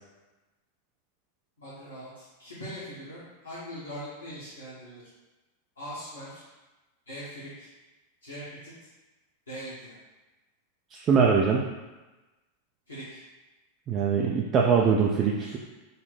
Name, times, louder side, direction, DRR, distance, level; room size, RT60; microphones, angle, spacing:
voice 1, 1.6-5.0 5.8-6.4 7.1-7.7 8.2-8.7 9.5-10.0 12.9-13.2 15.4-15.6, equal, 80° left, -10 dB, 0.9 m, -41 dB
voice 2, 10.9-11.7 13.9-15.6, right 6 dB, 30° right, -1 dB, 0.3 m, -23 dB
4.0 x 2.0 x 4.1 m, 1.1 s
figure-of-eight pair, 90°, 0 cm